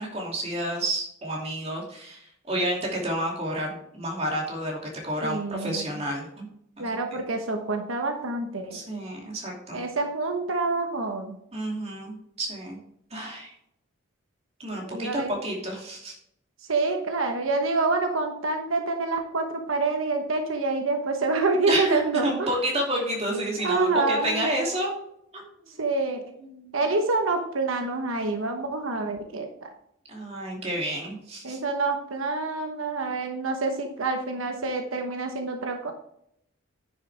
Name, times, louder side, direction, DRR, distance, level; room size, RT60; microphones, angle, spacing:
voice 1, 0.0-4.8 5.0-6.5 6.8-7.2 8.7-9.9 11.5-12.8 13.1-13.5 14.6-16.1 21.7-24.9 25.3-25.4 26.4-26.8 30.1-31.6, right 1 dB, 30° right, -1 dB, 2.7 m, -30 dB
voice 2, 5.2-5.8 6.8-8.8 9.7-11.4 14.8-15.3 16.7-22.5 23.6-24.5 25.8-26.2 26.7-29.7 31.4-35.9, right 3 dB, 85° right, 4 dB, 1.1 m, -27 dB
9.9 x 6.7 x 3.4 m, 0.72 s
head